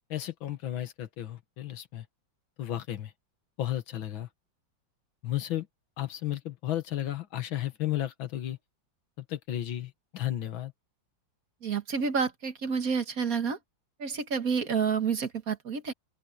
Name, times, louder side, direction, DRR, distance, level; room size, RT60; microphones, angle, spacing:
voice 1, 0.1-2.1 2.6-3.1 3.6-4.3 5.2-5.7 6.0-8.6 9.2-10.7, left 13 dB, 90° left, 2.1 m, -33 dB
voice 2, 11.6-13.6 14.0-15.9, right 6 dB, 50° right, 1.8 m, -29 dB
open air
omnidirectional pair, 2.1 m